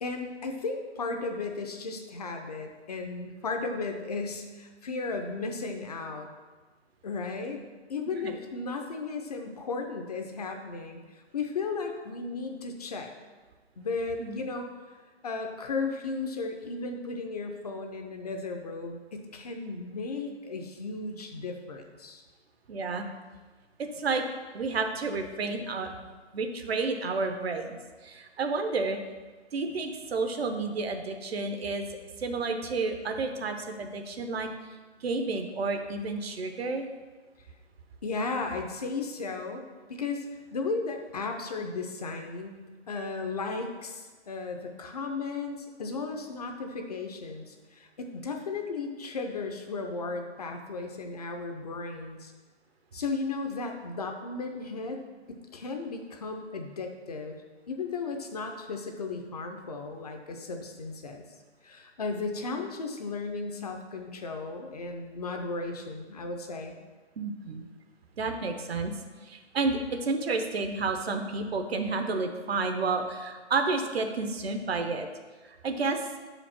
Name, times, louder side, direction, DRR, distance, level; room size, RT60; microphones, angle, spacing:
voice 1, 0.0-6.3 7.0-7.6 7.9-13.1 13.8-14.7 15.2-22.2 38.0-39.6 39.9-40.2 40.5-52.3 52.9-55.0 55.3-57.4 57.7-61.2 61.6-66.8, left 4 dB, 35° left, 4 dB, 0.6 m, -35 dB
voice 2, 22.7-23.1 23.8-24.2 24.5-25.9 26.3-27.8 28.0-29.0 29.5-31.9 32.2-34.5 35.0-36.9 67.2-67.7 68.2-68.9 69.2-75.1 75.6-76.0, right 3 dB, 60° right, 6 dB, 0.9 m, -30 dB
5.8 x 5.0 x 5.8 m, 1.3 s
hypercardioid pair, 160°, 35 cm